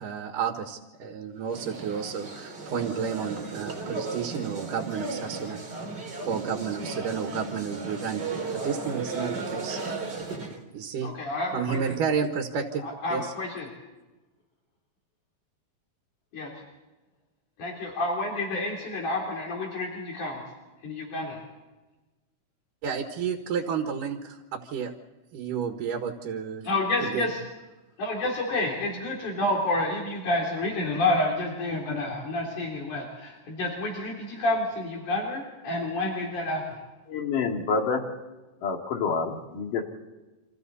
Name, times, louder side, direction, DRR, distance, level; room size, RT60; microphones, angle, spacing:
voice 1, 0.0-5.6 6.3-9.8 10.7-11.1 11.5-12.8 13.1-13.3 22.8-24.9 25.3-26.7 27.0-27.3, right 6 dB, 85° right, 3 dB, 3.1 m, -31 dB
sound 1, 1.4-10.6, right 3 dB, 35° right, 3.5 m, -35 dB
voice 2, 11.0-11.8 12.8-13.7 16.3-16.5 17.6-20.4 20.8-21.4 26.6-27.4 28.0-36.6, left 2 dB, 70° left, -1 dB, 5.1 m, -29 dB
voice 3, 37.1-38.0 38.6-39.8, left 5 dB, 85° left, 2 dB, 4.2 m, -27 dB
29.5 x 26.5 x 4.1 m, 1.1 s
omnidirectional pair, 3.6 m